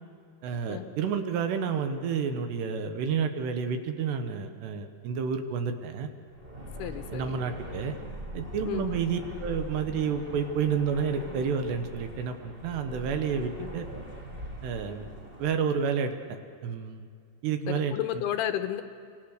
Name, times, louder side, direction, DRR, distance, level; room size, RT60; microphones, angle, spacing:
voice 1, 0.4-6.1 7.1-7.9 8.3-13.8 14.6-15.1 15.4-16.1 16.6-17.1 17.4-17.9, right 6 dB, 75° right, 7 dB, 3.4 m, -30 dB
sound 1, 6.3-15.6, right 1 dB, 20° right, 1.8 m, -42 dB
voice 2, 6.8-7.4 8.6-9.0 13.6-13.7 17.7-18.8, left 11 dB, 75° left, 7 dB, 2.8 m, -32 dB
29.5 x 25.0 x 6.7 m, 2.1 s
omnidirectional pair, 5.1 m